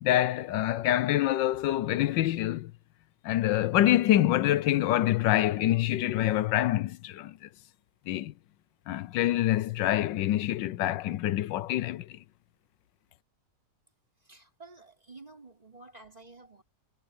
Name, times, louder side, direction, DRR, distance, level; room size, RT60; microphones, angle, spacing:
voice 1, 0.0-2.7 3.2-7.5 8.1-8.3 8.9-12.2, left 13 dB, 85° left, 1.3 m, -26 dB
voice 2, 14.2-16.6, right 3 dB, 20° right, 4.5 m, -51 dB
omnidirectional pair, 2.0 m